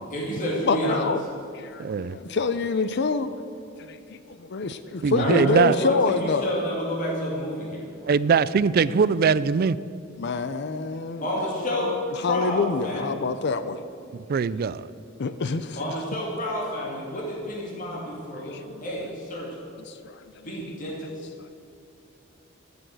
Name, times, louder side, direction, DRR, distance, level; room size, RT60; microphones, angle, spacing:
voice 1, 0.1-1.0 5.2-7.9 11.2-13.2 15.7-19.6 20.4-21.3, equal, 40° left, -3 dB, 2.5 m, -29 dB
voice 2, 0.7-1.2 1.5-3.3 3.9-6.5 10.2-13.8 15.2-15.8 18.5-18.8 19.9-20.5, left 4 dB, 55° left, 11 dB, 0.5 m, -27 dB
voice 3, 1.8-2.2 5.0-5.8 8.1-9.8 14.1-14.9, right 5 dB, 50° right, 18 dB, 0.4 m, -22 dB
14.0 x 7.1 x 7.8 m, 2.6 s
head